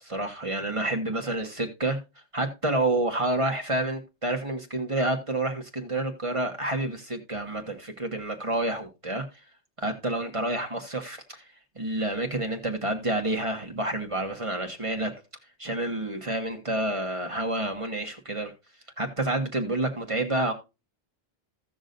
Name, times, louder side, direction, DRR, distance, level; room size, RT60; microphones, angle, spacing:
voice 1, 0.1-2.0 2.3-9.2 9.8-11.5 11.7-15.1 15.6-18.5 19.0-20.5, right 2 dB, 30° right, 1.6 m, -29 dB
16.0 x 6.2 x 2.6 m
omnidirectional pair, 1.1 m